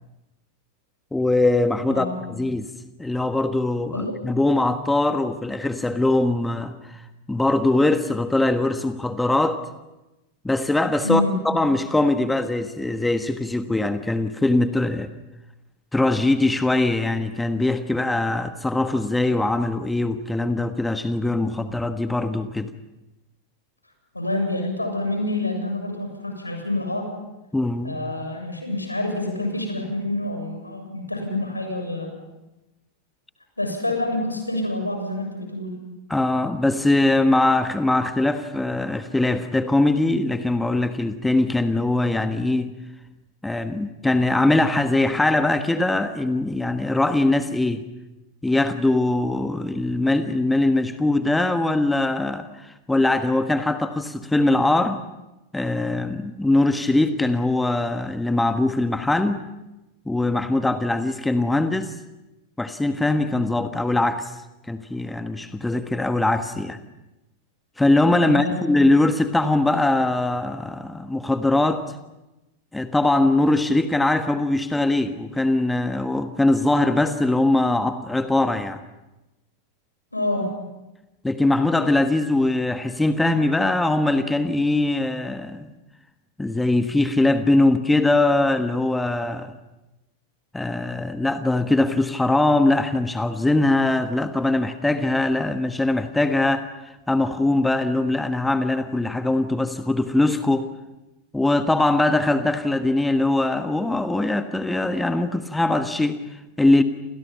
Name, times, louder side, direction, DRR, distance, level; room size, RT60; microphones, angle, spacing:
voice 1, 1.1-2.7 3.0-9.6 10.4-15.1 15.9-22.7 27.5-28.0 36.1-42.7 43.4-47.8 48.4-55.0 55.5-59.4 60.0-61.9 62.6-64.4 64.7-66.8 67.8-71.9 72.7-78.8 81.2-85.7 86.4-89.6 90.5-100.7 101.3-106.8, left 2 dB, 5° left, 9 dB, 1.5 m, -21 dB
voice 2, 11.0-11.4 24.1-27.1 27.8-32.1 33.6-35.8 68.3-68.6 80.1-80.5, left 2 dB, 85° left, 4 dB, 7.3 m, -27 dB
29.0 x 28.5 x 5.7 m, 0.98 s
figure-of-eight pair, 90°, 0 cm